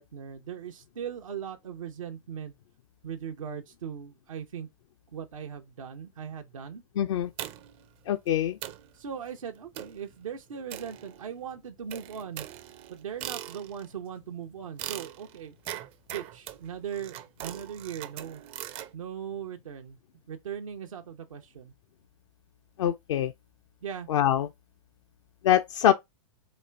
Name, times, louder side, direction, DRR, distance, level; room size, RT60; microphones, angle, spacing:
voice 1, 0.0-2.5 3.0-4.7 5.1-6.8 8.9-12.5 12.9-15.5 16.1-18.4 18.9-20.0 20.3-21.7 23.8-24.1, right 8 dB, 80° right, 0.7 m, -39 dB
voice 2, 7.0-7.3 8.1-8.6 22.8-23.3 24.1-24.5 25.4-25.9, left 11 dB, 65° left, 0.5 m, -24 dB
sound 1, 7.4-7.8 8.3-8.4 8.6-8.9 9.7-10.1 10.7-11.4 11.9-13.9 14.8-18.9, right 12 dB, 35° right, 0.5 m, -41 dB
4.3 x 2.5 x 3.3 m
hypercardioid pair, 115°, 17 cm